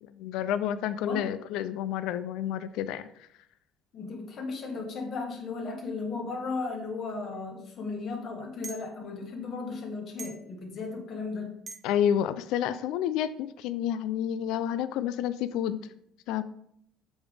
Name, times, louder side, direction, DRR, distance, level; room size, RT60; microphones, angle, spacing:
voice 1, 0.0-3.1 11.8-15.8 16.3-16.4, left 10 dB, 75° left, 13 dB, 0.4 m, -29 dB
voice 2, 3.9-11.6, left 4 dB, 50° left, 1 dB, 1.6 m, -35 dB
sound 1, 7.3-7.4 8.6-8.9 10.2-10.5 11.7-11.9, right 3 dB, 40° right, 0.9 m, -42 dB
7.0 x 3.5 x 4.9 m, 0.72 s
cardioid pair, 100°, 0 cm